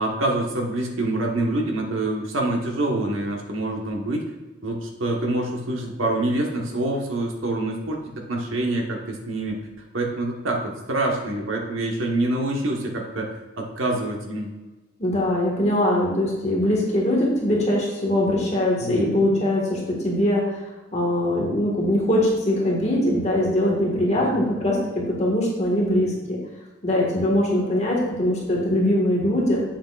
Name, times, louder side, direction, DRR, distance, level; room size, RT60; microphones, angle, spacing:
voice 1, 0.0-4.3 4.6-8.0 8.3-9.6 9.9-13.3 13.6-14.5 18.8-19.0 24.1-24.4, right 2 dB, 85° right, 0 dB, 1.3 m, -26 dB
voice 2, 15.0-20.4 20.9-26.4 26.8-29.6, left 1 dB, 35° left, -3 dB, 1.7 m, -22 dB
8.1 x 7.3 x 2.4 m, 1.2 s
head